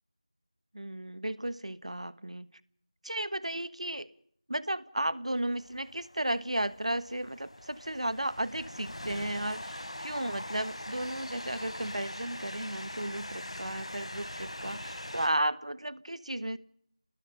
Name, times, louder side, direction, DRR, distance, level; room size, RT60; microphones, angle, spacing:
voice 1, 0.7-2.5 3.0-4.1 4.5-16.6, right 1 dB, 85° right, 1.4 m, -34 dB
Train, 5.5-15.3, left 1 dB, 65° left, 5.1 m, -42 dB
27.0 x 20.0 x 6.7 m
figure-of-eight pair, 180°, 3 cm